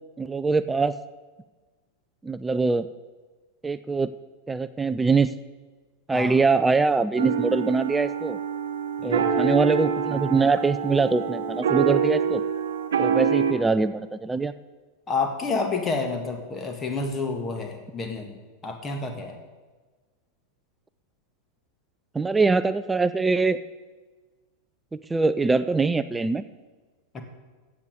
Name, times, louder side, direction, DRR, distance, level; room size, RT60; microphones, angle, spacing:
voice 1, 0.2-0.9 2.2-2.9 3.6-4.1 4.5-5.3 6.1-8.4 9.0-12.5 13.0-14.5 22.1-23.6 24.9-26.4, right 4 dB, 10° right, 14 dB, 0.4 m, -23 dB
sound 1, 7.2-13.5, right 6 dB, 60° right, 1.0 m, -26 dB
voice 2, 9.0-9.4 15.1-19.4 27.1-27.2, left 4 dB, 20° left, 4 dB, 1.6 m, -29 dB
15.0 x 8.3 x 5.2 m, 1.3 s
figure-of-eight pair, 90°, 0 cm